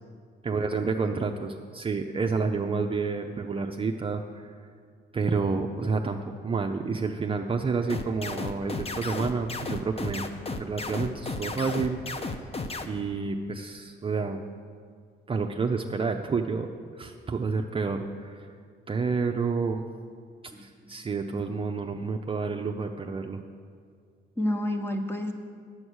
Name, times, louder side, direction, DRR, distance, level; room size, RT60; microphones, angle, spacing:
voice 1, 0.4-4.6 5.1-6.2 6.4-10.3 10.6-12.4 12.8-14.4 15.3-16.7 16.9-18.5 18.9-19.9 20.6-23.4, right 4 dB, 25° right, 3 dB, 0.5 m, -29 dB
sound 1, 7.9-12.9, left 3 dB, 30° left, 0.7 m, -33 dB
voice 2, 20.5-20.9 24.4-25.3, left 1 dB, 10° left, 4 dB, 1.1 m, -30 dB
9.6 x 7.9 x 6.3 m, 2.1 s
cardioid pair, 90°, 20 cm